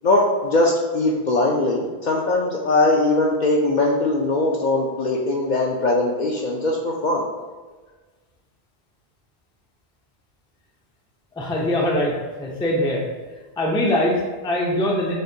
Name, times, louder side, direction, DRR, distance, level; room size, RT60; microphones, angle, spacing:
voice 1, 0.0-7.2, left 2 dB, 55° left, -1 dB, 0.5 m, -20 dB
voice 2, 11.4-13.0 13.6-15.2, left 1 dB, 10° left, -2 dB, 0.3 m, -22 dB
6.5 x 2.2 x 2.7 m, 1.3 s
omnidirectional pair, 1.1 m